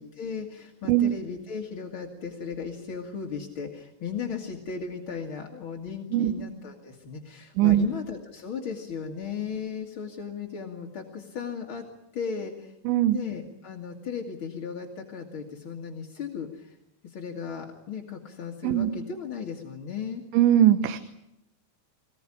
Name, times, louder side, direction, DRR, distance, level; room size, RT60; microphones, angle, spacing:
voice 1, 0.0-11.8 12.1-12.7 13.1-16.8 17.0-20.2, left 6 dB, 45° left, 1 dB, 1.7 m, -36 dB
voice 2, 12.9-13.2 18.6-18.9 20.3-21.0, right 12 dB, 85° right, 10 dB, 3.4 m, -20 dB
23.5 x 19.5 x 10.0 m, 0.86 s
omnidirectional pair, 5.2 m